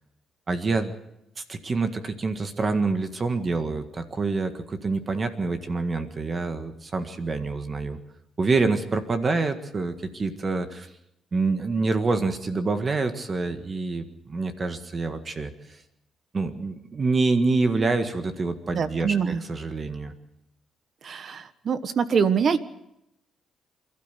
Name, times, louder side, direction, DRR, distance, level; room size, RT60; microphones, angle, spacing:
voice 1, 0.5-0.9 1.4-8.0 8.4-10.9 11.3-15.8 16.3-20.1, right 3 dB, 35° right, 8 dB, 1.7 m, -26 dB
voice 2, 18.7-19.4 21.0-22.6, right 6 dB, 55° right, 13 dB, 1.3 m, -24 dB
27.0 x 12.5 x 8.3 m, 0.83 s
cardioid pair, 90°, 0 cm